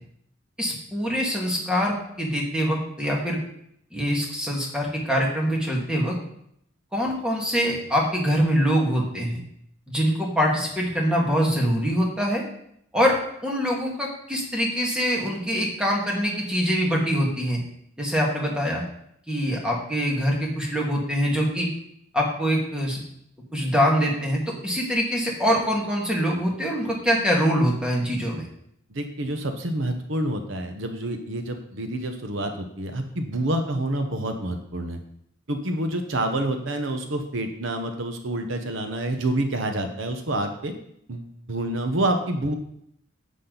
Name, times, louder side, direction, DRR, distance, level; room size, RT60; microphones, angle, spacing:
voice 1, 0.6-3.4 3.9-6.1 6.9-9.4 9.9-12.4 12.9-17.6 18.0-18.8 19.3-21.7 22.1-23.0 23.5-28.5, equal, 5° right, -2 dB, 2.0 m, -24 dB
voice 2, 28.9-35.0 35.5-40.7 41.1-42.5, right 1 dB, 75° right, 5 dB, 1.0 m, -28 dB
10.0 x 7.4 x 4.0 m, 0.72 s
head